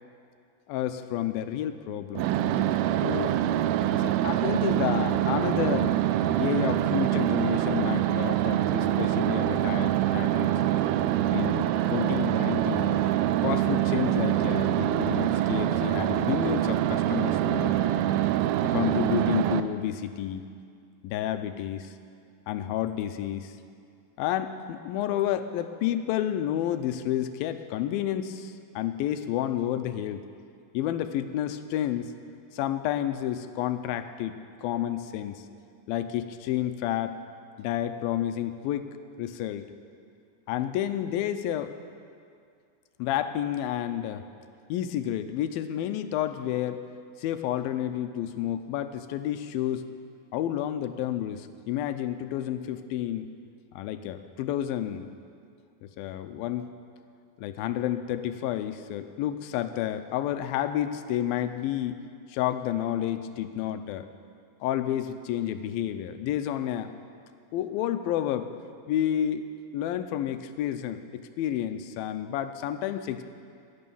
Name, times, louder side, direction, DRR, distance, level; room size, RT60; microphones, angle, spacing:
voice 1, 0.7-2.3 3.0-3.4 4.0-6.0 6.4-10.5 11.3-12.9 13.4-17.9 18.6-20.4 21.0-21.9 22.5-23.6 24.2-30.3 30.7-32.1 32.5-35.4 35.9-37.2 37.6-38.9 39.2-39.7 40.5-41.8 43.0-44.2 44.7-46.8 47.2-49.9 50.3-53.3 53.8-55.1 56.0-56.7 57.4-62.0 62.3-64.1 64.6-66.9 67.5-68.5 68.9-69.5 69.7-73.2, left 11 dB, 85° left, 10 dB, 2.5 m, -30 dB
sound 1, 2.1-19.6, right 12 dB, 90° right, 1.8 m, -25 dB
17.0 x 11.5 x 7.0 m, 2.3 s
omnidirectional pair, 4.2 m